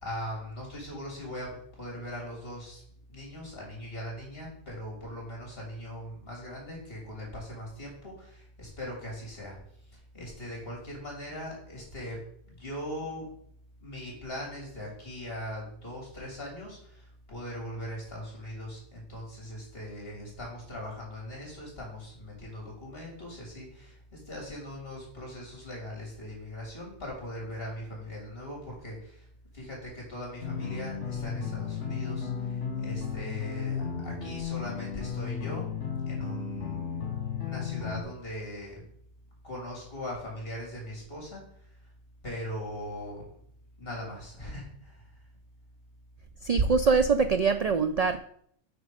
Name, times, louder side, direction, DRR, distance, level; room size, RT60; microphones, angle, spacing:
voice 1, 0.0-2.8 3.1-9.6 9.9-12.2 12.4-13.3 13.8-29.3 29.5-35.7 36.1-37.0 37.4-38.8 39.4-41.9 42.2-43.2 43.8-45.1, left 1 dB, 55° left, -2 dB, 3.5 m, -40 dB
sound 1, 30.4-38.0, left 7 dB, 80° left, 1.7 m, -34 dB
voice 2, 46.4-48.2, right 5 dB, 85° right, 10 dB, 0.3 m, -23 dB
8.0 x 5.2 x 5.0 m, 0.65 s
omnidirectional pair, 1.2 m